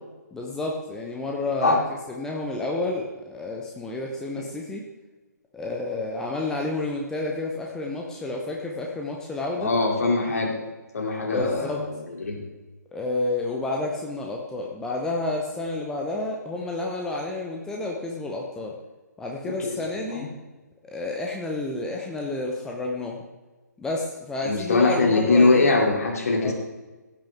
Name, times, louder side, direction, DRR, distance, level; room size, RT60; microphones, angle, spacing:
voice 1, 0.3-1.8 2.1-4.9 5.5-9.7 11.3-11.8 12.9-18.7 19.2-20.3 20.8-23.2 23.8-25.8 26.4-26.5, left 2 dB, 5° left, -1 dB, 0.9 m, -30 dB
voice 2, 9.6-10.6 10.9-12.4 19.4-20.3 24.4-26.5, left 3 dB, 55° left, 1 dB, 3.0 m, -22 dB
16.5 x 8.9 x 3.6 m, 1.2 s
figure-of-eight pair, 140°, 10 cm